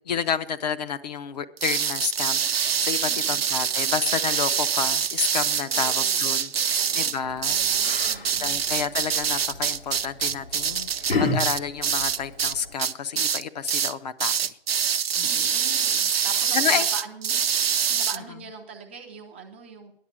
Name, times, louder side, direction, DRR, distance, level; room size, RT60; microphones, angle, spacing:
voice 1, 0.1-7.8 8.4-10.9 11.2-14.6 15.2-15.5 16.1-16.3 16.5-16.9, left 7 dB, 45° left, 11 dB, 0.7 m, -30 dB
sound 1, 1.6-12.5 12.8-13.4 13.7-13.9 14.2-18.2, right 7 dB, 85° right, 0.7 m, -25 dB
voice 2, 3.0-3.4 5.6-7.2 7.4-8.6 15.2-17.4 17.6-19.9, right 5 dB, 15° right, 0 dB, 0.4 m, -43 dB
Yell, 7.2-12.7, left 3 dB, 85° left, 2.6 m, -33 dB
10.5 x 7.8 x 7.3 m, 0.74 s
hypercardioid pair, 155°, 29 cm